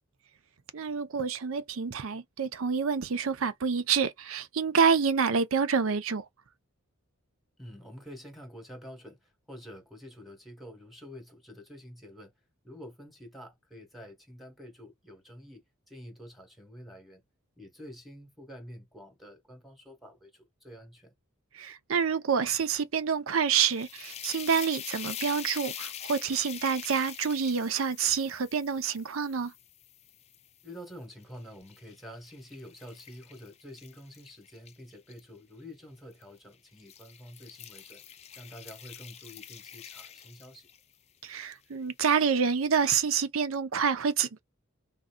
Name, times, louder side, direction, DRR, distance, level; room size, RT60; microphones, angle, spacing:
voice 1, 0.7-6.3 21.5-29.5 41.2-44.4, right 6 dB, 70° right, 0.6 m, -27 dB
voice 2, 7.6-12.3 12.6-17.2 17.6-21.1 30.6-38.0 38.3-40.7, equal, ahead, 1.1 m, -48 dB
sound 1, 23.5-30.7 31.2-35.2 36.1-36.4 36.8-40.9, left 9 dB, 30° left, 0.3 m, -44 dB
3.6 x 2.7 x 2.2 m
head